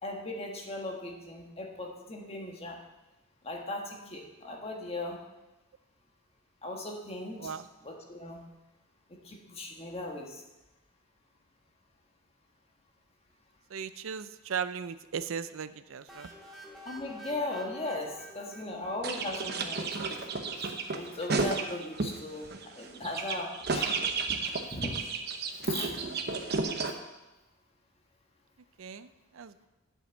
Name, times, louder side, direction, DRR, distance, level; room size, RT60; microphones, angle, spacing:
voice 1, 0.0-2.8 3.4-5.2 6.6-7.5 7.8-8.5 9.1-10.4 16.8-20.3 20.9-24.0 24.4-24.9 25.6-26.0, left 2 dB, 30° left, 1 dB, 1.5 m, -38 dB
voice 2, 13.7-16.3 28.8-29.1 29.3-29.7, right 6 dB, 70° right, 13 dB, 0.5 m, -37 dB
sound 1, 16.1-19.9, right 1 dB, ahead, 2.1 m, -49 dB
sound 2, 19.0-22.2 22.5-26.9, right 4 dB, 50° right, 0.9 m, -32 dB
8.0 x 6.3 x 8.1 m, 1.0 s
head